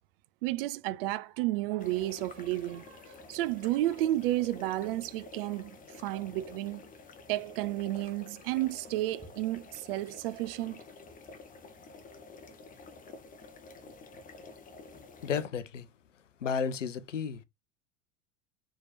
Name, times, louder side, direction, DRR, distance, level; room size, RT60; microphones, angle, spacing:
voice 1, 0.4-5.7 6.0-6.8 7.3-10.8, right 15 dB, 50° right, 0.5 m, -32 dB
sound 1, 1.8-15.4, left 3 dB, 20° left, 1.0 m, -50 dB
voice 2, 15.2-15.9 16.4-17.4, left 6 dB, 80° left, 0.6 m, -32 dB
4.4 x 3.6 x 2.6 m
figure-of-eight pair, 85°, 37 cm